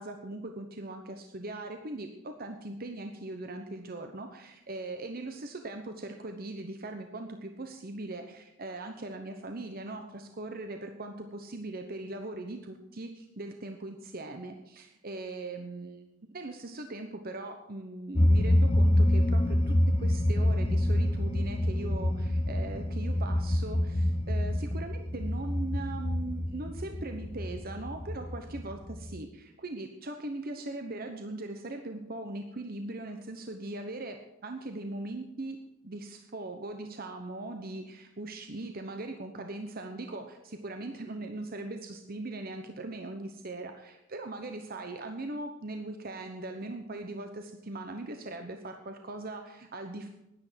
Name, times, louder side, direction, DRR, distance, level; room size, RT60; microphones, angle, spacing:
voice 1, 0.0-16.1 16.3-34.2 34.4-50.1, right 2 dB, 45° right, 5 dB, 1.0 m, -40 dB
sound 1, 18.2-29.1, left 1 dB, 30° left, 1.0 m, -27 dB
10.5 x 10.5 x 7.5 m, 0.88 s
head